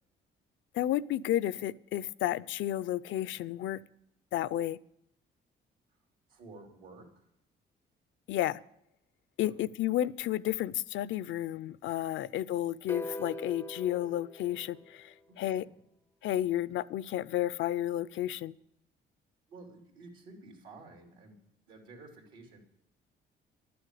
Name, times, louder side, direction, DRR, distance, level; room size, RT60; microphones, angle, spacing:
voice 1, 0.7-3.8 4.3-4.8 8.3-8.6 9.4-15.6 16.2-18.5, left 13 dB, 75° left, 0.5 m, -32 dB
voice 2, 5.9-7.3 9.4-9.7 12.3-12.4 15.4-15.7 19.5-21.4 21.7-22.6, right 3 dB, 80° right, 3.3 m, -52 dB
sound 1, 12.9-15.2, left 2 dB, 15° left, 0.4 m, -41 dB
11.5 x 7.8 x 8.2 m
cardioid pair, 90°, 20 cm